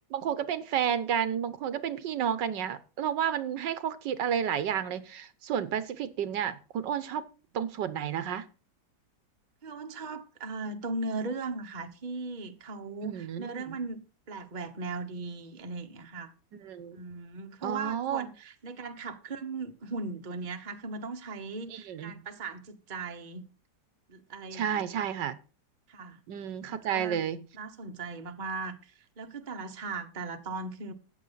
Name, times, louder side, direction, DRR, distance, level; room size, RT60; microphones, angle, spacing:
voice 1, 0.1-7.2 7.5-8.5 13.0-13.8 16.6-17.0 17.6-18.3 21.7-22.2 24.5-25.3 26.3-27.4, right 9 dB, 80° right, 1.6 m, -31 dB
voice 2, 9.6-16.3 16.9-23.5 24.1-25.2 25.9-26.2 26.7-27.3 27.5-30.9, right 3 dB, 30° right, 1.1 m, -38 dB
14.0 x 9.1 x 4.0 m
omnidirectional pair, 1.9 m